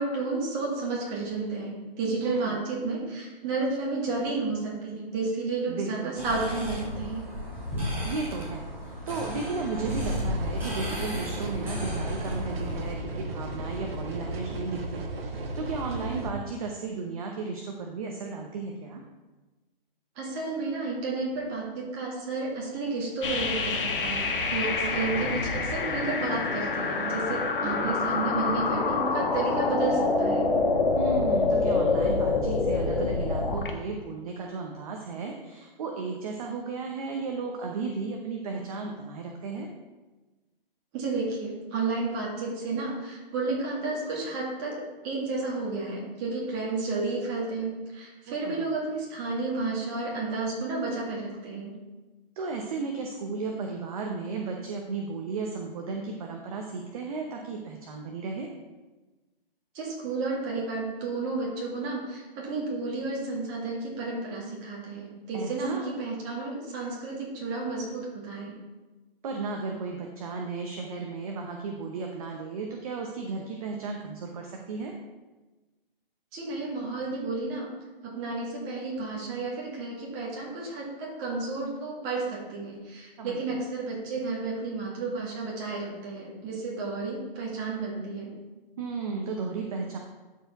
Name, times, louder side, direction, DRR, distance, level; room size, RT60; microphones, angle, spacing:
voice 1, 0.0-7.2 20.2-30.5 40.9-51.7 59.7-68.5 76.3-77.7 78.2-88.3, right 3 dB, 25° right, -3 dB, 2.0 m, -32 dB
voice 2, 2.2-2.6 5.7-6.2 8.0-19.0 27.6-27.9 31.0-39.7 48.3-48.7 52.4-58.5 65.3-65.9 69.2-74.9 83.2-83.4 88.8-90.0, right 4 dB, 40° right, 2 dB, 0.8 m, -34 dB
sound 1, 6.2-12.9, left 1 dB, 5° right, 2.1 m, -34 dB
sound 2, 9.8-16.3, right 2 dB, 80° right, 1.4 m, -35 dB
sound 3, 23.2-33.7, left 3 dB, 65° left, 1.3 m, -26 dB
12.0 x 4.6 x 3.5 m, 1.2 s
hypercardioid pair, 160°, 29 cm